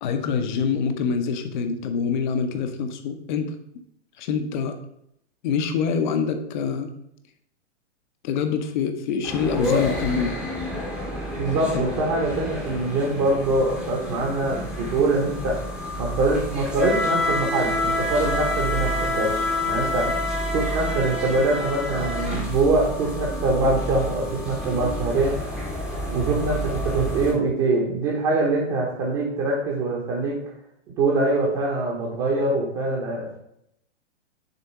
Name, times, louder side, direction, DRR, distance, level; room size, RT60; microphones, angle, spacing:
voice 1, 0.0-3.5 4.2-4.8 5.4-6.9 8.2-10.3 11.7-11.8, left 6 dB, 40° left, 8 dB, 0.7 m, -25 dB
sound 1, 9.2-27.3, left 1 dB, ahead, 0.9 m, -28 dB
voice 2, 11.4-15.6 16.0-19.3 19.6-20.1 20.5-25.4 26.1-30.4 31.0-33.4, right 2 dB, 25° right, -2 dB, 1.1 m, -23 dB
6.7 x 3.4 x 4.6 m, 0.76 s
hypercardioid pair, 150°, 37 cm